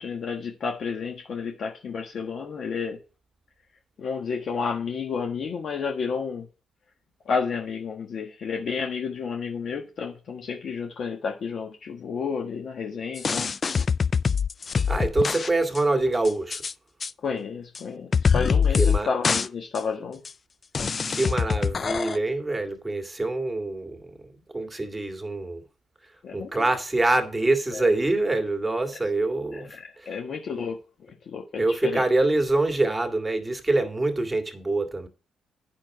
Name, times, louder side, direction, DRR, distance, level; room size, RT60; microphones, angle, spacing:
voice 1, 0.0-3.0 4.0-6.5 7.2-13.5 17.2-20.2 26.2-26.7 27.7-27.9 29.5-30.8 31.3-32.0, left 5 dB, 55° left, 1.4 m, -31 dB
sound 1, 13.2-15.5 15.7-15.8 16.2-16.7 17.0-17.1 17.7-17.8 18.1-19.0 19.2-19.5 19.7-19.8 20.2-20.3 20.7-22.2, left 6 dB, 40° left, 0.4 m, -24 dB
voice 2, 14.9-16.6 18.8-19.1 21.1-24.1 24.5-25.6 26.3-30.2 31.6-35.1, right 2 dB, 15° right, 2.0 m, -25 dB
9.1 x 6.3 x 4.9 m
cardioid pair, 90°, 0 cm